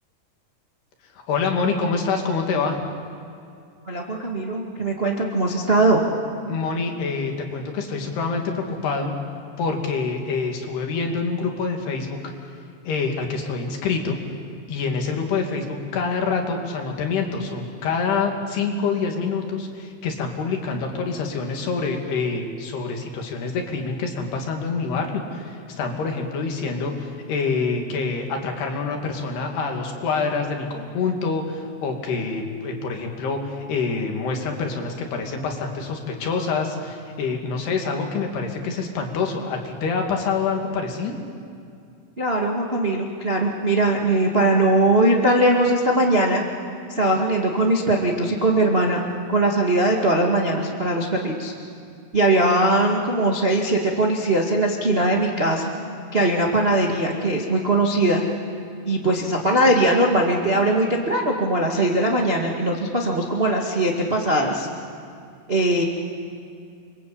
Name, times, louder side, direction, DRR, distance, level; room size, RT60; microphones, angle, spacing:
voice 1, 1.2-2.8 6.5-9.1 9.6-12.3 12.8-14.2 14.7-41.1, left 4 dB, 70° left, 3 dB, 4.4 m, -26 dB
voice 2, 3.8-6.0 42.2-46.4 46.9-49.0 49.3-51.5 52.1-55.7 56.1-58.2 58.8-64.7 65.5-65.8, right 1 dB, 35° right, 0 dB, 1.0 m, -20 dB
28.5 x 24.0 x 8.7 m, 2.4 s
omnidirectional pair, 5.0 m